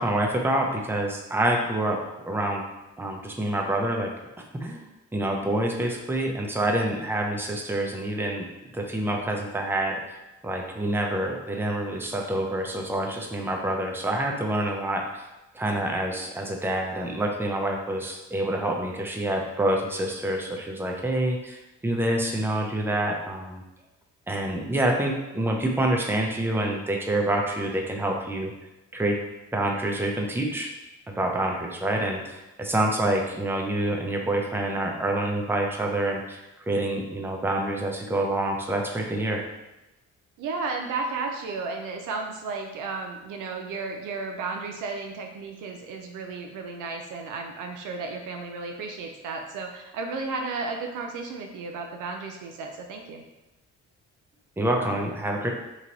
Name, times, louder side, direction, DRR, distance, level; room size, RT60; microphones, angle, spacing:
voice 1, 0.0-2.0 2.2-2.7 3.0-4.1 4.5-4.9 5.1-8.5 8.7-10.0 10.4-15.2 15.5-23.6 24.3-28.5 28.9-29.2 29.5-30.7 31.1-39.4 54.6-55.5, right 1 dB, 5° right, 1 dB, 0.6 m, -27 dB
voice 2, 40.4-53.2, right 4 dB, 85° right, 3 dB, 0.6 m, -33 dB
3.1 x 2.7 x 3.9 m, 0.98 s
cardioid pair, 90°, 30 cm